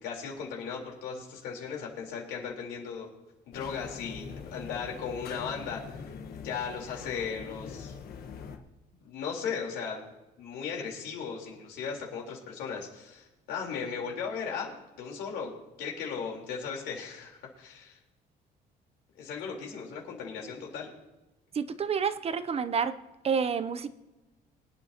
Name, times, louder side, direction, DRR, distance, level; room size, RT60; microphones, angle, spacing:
voice 1, 0.0-3.1 3.5-8.0 9.0-10.0 10.4-14.7 15.0-15.5 15.8-18.0 19.2-20.9, left 6 dB, 90° left, -1 dB, 3.9 m, -37 dB
sound 1, 3.5-8.6, left 6 dB, 65° left, 1.3 m, -43 dB
voice 2, 21.5-22.9 23.2-23.9, right 6 dB, 35° right, 12 dB, 0.7 m, -29 dB
25.5 x 9.3 x 2.9 m, 1.1 s
cardioid pair, 110°, 17 cm